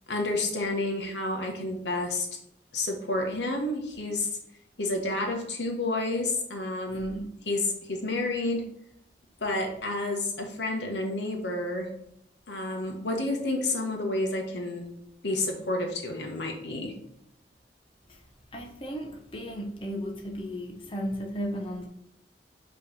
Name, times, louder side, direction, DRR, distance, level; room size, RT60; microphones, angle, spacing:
voice 1, 0.1-2.3 2.7-4.4 4.8-7.2 7.4-8.6 9.4-11.9 12.5-14.9 15.2-16.9, left 2 dB, 90° left, 1 dB, 1.3 m, -30 dB
voice 2, 6.9-7.3 18.1-18.2 18.5-21.9, equal, 30° left, 0 dB, 0.9 m, -35 dB
5.4 x 3.3 x 5.5 m, 0.74 s
head